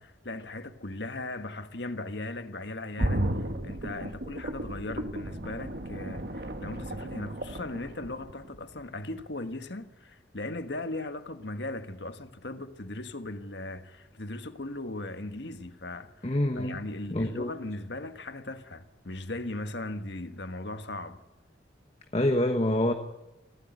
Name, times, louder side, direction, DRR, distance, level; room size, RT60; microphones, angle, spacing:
voice 1, 0.0-16.3 16.6-21.2, left 2 dB, 70° left, 1.5 m, -38 dB
sound 1, 3.0-8.8 9.2-9.3, right 1 dB, 60° right, 1.7 m, -34 dB
voice 2, 16.2-16.8 17.1-17.5 22.1-22.9, left 1 dB, 35° left, 1.3 m, -26 dB
24.5 x 16.5 x 9.4 m
head